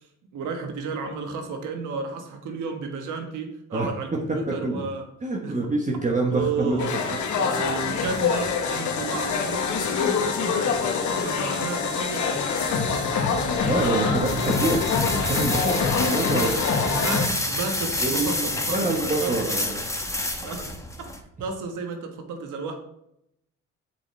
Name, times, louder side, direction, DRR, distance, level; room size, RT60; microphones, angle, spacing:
voice 1, 0.3-5.0 5.4-5.6 6.3-6.9 7.3-13.4 16.8-19.6 20.4-20.7 21.0-21.1 21.4-22.8, right 4 dB, 80° right, 5 dB, 1.4 m, -33 dB
voice 2, 4.3-4.8 5.2-7.0 13.7-16.7 18.0-19.8, right 2 dB, 25° right, 0 dB, 1.2 m, -26 dB
sound 1, 6.8-17.3, left 5 dB, 75° left, 1.2 m, -25 dB
sound 2, 13.3-21.2, left 1 dB, 10° left, 1.1 m, -29 dB
7.5 x 6.1 x 3.3 m, 0.78 s
cardioid pair, 90°, 30 cm